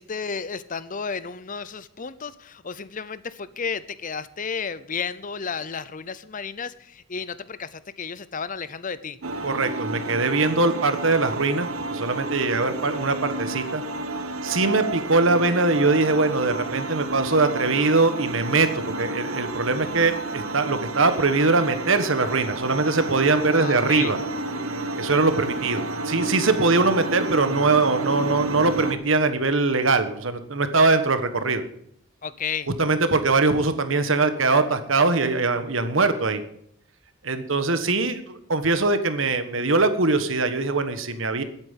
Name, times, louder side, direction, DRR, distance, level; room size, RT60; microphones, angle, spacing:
voice 1, 0.0-9.2 23.5-24.2 32.2-32.7, left 6 dB, 40° left, 16 dB, 0.7 m, -32 dB
sound 1, 9.2-28.9, right 2 dB, 85° right, 1.6 m, -31 dB
voice 2, 9.4-13.8 14.4-24.2 25.0-31.6 32.8-36.4 37.2-41.4, right 3 dB, 65° right, 10 dB, 1.4 m, -22 dB
11.5 x 9.0 x 7.4 m, 0.70 s
head